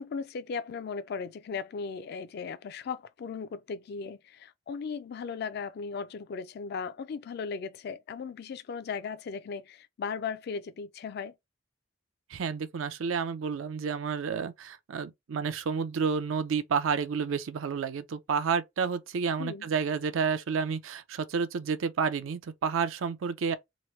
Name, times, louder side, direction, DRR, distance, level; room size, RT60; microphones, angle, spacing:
voice 1, 0.0-11.3 19.4-19.7, left 5 dB, 55° left, 0.3 m, -37 dB
voice 2, 12.3-23.6, right 6 dB, 85° right, 0.4 m, -30 dB
3.0 x 2.0 x 3.0 m
head